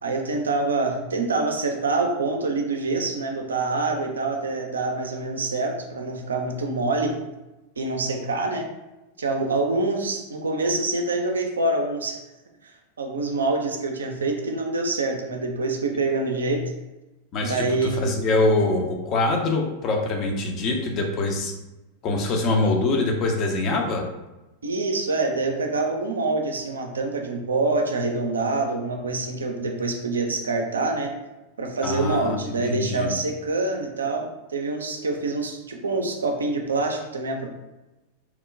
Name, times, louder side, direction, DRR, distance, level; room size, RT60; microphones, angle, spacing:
voice 1, 0.0-7.2 7.8-8.7 9.2-12.2 13.0-16.6 17.4-18.1 24.6-31.1 31.6-37.5, right 3 dB, 70° right, 3 dB, 0.4 m, -26 dB
voice 2, 17.3-21.5 22.0-24.0 31.8-33.1, left 2 dB, 35° left, 2 dB, 0.5 m, -24 dB
2.9 x 2.1 x 2.5 m, 1.0 s
figure-of-eight pair, 90°, 0 cm